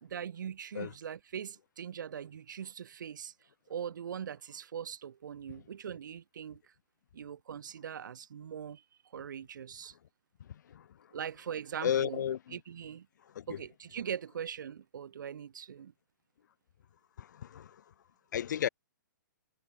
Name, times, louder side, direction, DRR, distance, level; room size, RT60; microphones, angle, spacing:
voice 1, 0.0-3.3 3.7-6.6 7.1-8.8 9.1-9.9 11.1-12.2 12.5-13.1 13.5-15.9, right 8 dB, 75° right, 0.6 m, -41 dB
voice 2, 10.5-10.9 11.8-12.6 13.3-13.6 17.2-17.8 18.3-18.7, left 9 dB, 65° left, 0.7 m, -33 dB
hypercardioid pair, 130°, 10 cm